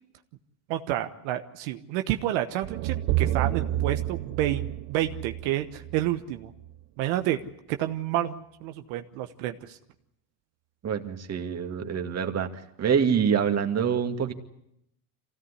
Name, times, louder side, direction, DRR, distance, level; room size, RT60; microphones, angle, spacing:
voice 1, 0.7-6.5 7.0-7.4 7.7-9.8, right 13 dB, 85° right, 7 dB, 1.3 m, -29 dB
sound 1, 2.6-6.8, right 13 dB, 65° right, 1.0 m, -29 dB
voice 2, 10.8-12.5 12.8-14.3, right 7 dB, 40° right, 5 dB, 2.3 m, -25 dB
24.5 x 17.0 x 9.9 m, 0.80 s
supercardioid pair, 105°, 42 cm